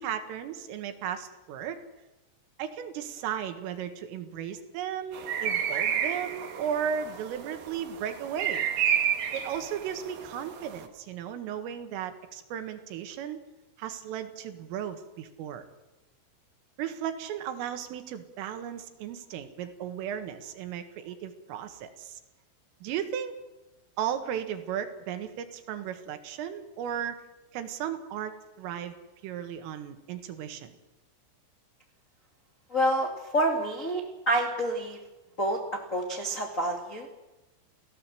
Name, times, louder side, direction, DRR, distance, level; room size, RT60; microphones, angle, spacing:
voice 1, 0.0-1.8 2.6-8.7 9.3-13.4 13.8-15.6 16.8-22.2 22.8-23.4 24.0-27.2 27.5-28.9 29.2-30.7, right 9 dB, 80° right, 7 dB, 4.2 m, -35 dB
sound 1, 5.1-10.9, right 8 dB, 60° right, 2.8 m, -31 dB
voice 2, 32.7-35.0 35.4-35.6 35.9-37.1, right 1 dB, 45° left, 1 dB, 1.0 m, -28 dB
30.0 x 17.0 x 7.7 m, 1.1 s
omnidirectional pair, 5.9 m